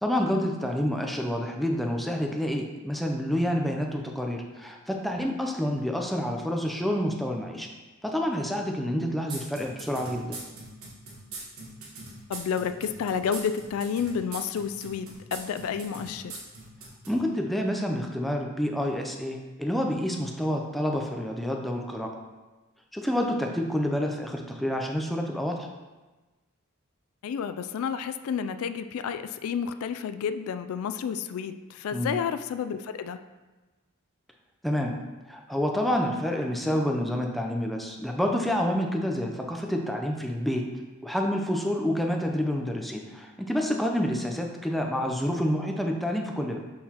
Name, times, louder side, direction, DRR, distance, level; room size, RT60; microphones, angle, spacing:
voice 1, 0.0-7.7 8.0-10.4 17.1-22.1 22.9-25.7 31.9-32.1 34.6-34.9 35.3-40.6 41.0-46.6, equal, ahead, 1 dB, 0.5 m, -28 dB
sound 1, 9.3-17.2, right 3 dB, 85° right, 1.5 m, -41 dB
voice 2, 12.3-16.4 27.2-33.2, left 7 dB, 85° left, 10 dB, 0.3 m, -30 dB
6.4 x 5.7 x 2.9 m, 1.2 s
head